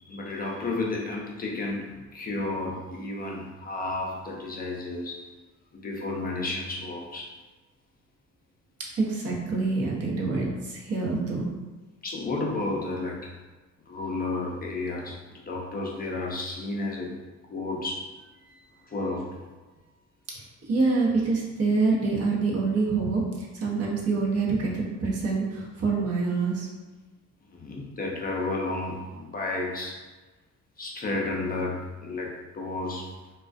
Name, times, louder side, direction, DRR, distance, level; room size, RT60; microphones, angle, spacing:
voice 1, 0.1-5.2 5.7-7.3 12.0-13.3 13.9-17.1 17.5-18.1 18.9-19.4 20.9-21.0 27.5-30.0 30.8-33.1, left 2 dB, 30° left, -2 dB, 0.4 m, -32 dB
voice 2, 8.9-11.5 18.5-18.6 20.6-26.7, right 4 dB, 55° right, -3 dB, 0.7 m, -26 dB
2.4 x 2.2 x 2.4 m, 1.2 s
cardioid pair, 90°, 30 cm